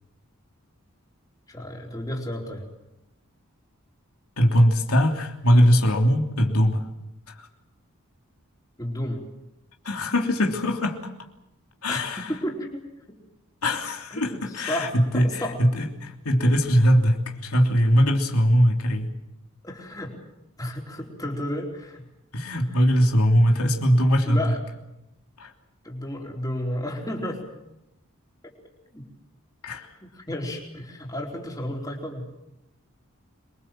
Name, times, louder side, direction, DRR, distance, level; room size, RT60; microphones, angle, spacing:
voice 1, 1.5-2.7 8.8-9.3 11.8-12.0 12.3-12.8 14.1-15.6 19.6-20.1 20.6-22.0 22.7-22.8 24.3-24.6 25.8-27.4 28.9-29.0 30.0-32.3, left 1 dB, 15° left, -1 dB, 4.2 m, -32 dB
voice 2, 4.4-6.8 9.8-11.0 11.8-12.3 13.6-19.1 22.3-24.5 25.4-25.5 29.6-29.9, equal, 85° left, 1 dB, 3.2 m, -21 dB
26.0 x 23.0 x 7.6 m, 0.90 s
head